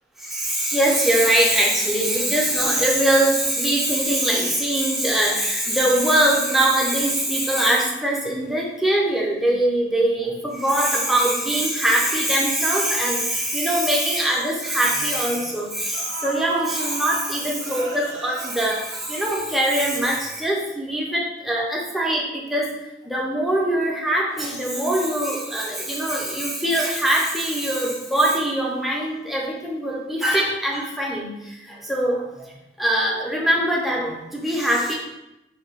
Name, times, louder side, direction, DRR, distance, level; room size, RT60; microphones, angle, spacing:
voice 1, 0.2-22.7 23.0-32.5 32.8-34.9, right 1 dB, ahead, -4 dB, 0.4 m, -22 dB
sound 1, 13.8-13.9 14.2-14.4 15.4-15.5 15.9-19.9 20.2-20.3, right 3 dB, 80° right, 0.4 m, -36 dB
2.7 x 2.1 x 2.8 m, 0.91 s
head